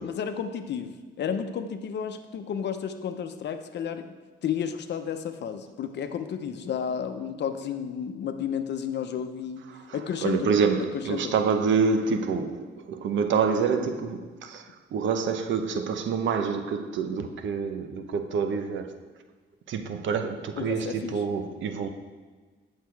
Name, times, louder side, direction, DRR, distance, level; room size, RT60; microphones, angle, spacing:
voice 1, 0.0-4.1 4.4-9.6 9.9-10.5 11.1-11.3 20.6-21.2, left 7 dB, 60° left, 0.8 m, -32 dB
voice 2, 9.7-18.9 19.7-21.9, right 5 dB, 70° right, 0.8 m, -27 dB
8.4 x 6.6 x 4.6 m
cardioid pair, 90°, 20 cm